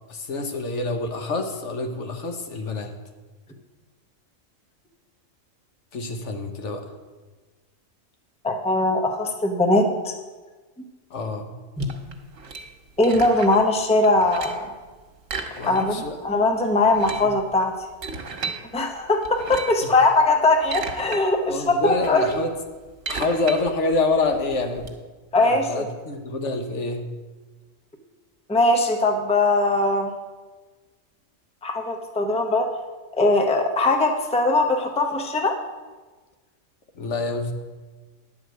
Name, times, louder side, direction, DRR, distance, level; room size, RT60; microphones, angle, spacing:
voice 1, 0.1-2.9 5.9-6.8 11.1-11.5 15.6-16.2 17.2-17.3 19.8-19.9 21.5-22.5 23.1-24.9 25.4-27.0 36.9-37.5, left 3 dB, 65° left, 5 dB, 1.3 m, -27 dB
voice 2, 8.4-10.1 11.8-11.9 13.0-14.7 15.7-16.0 16.2-17.7 18.7-22.2 23.1-23.2 25.3-25.9 28.5-30.1 31.6-32.7 33.2-35.6, left 2 dB, 5° left, 3 dB, 0.7 m, -20 dB
sound 1, 11.8-13.7 14.0-14.7 15.2-16.1 16.4-16.5 16.8-18.6 19.2-19.9 20.4-21.2 21.6-24.9, right 4 dB, 80° right, 1.5 m, -35 dB
10.5 x 4.9 x 7.8 m, 1.3 s
omnidirectional pair, 1.3 m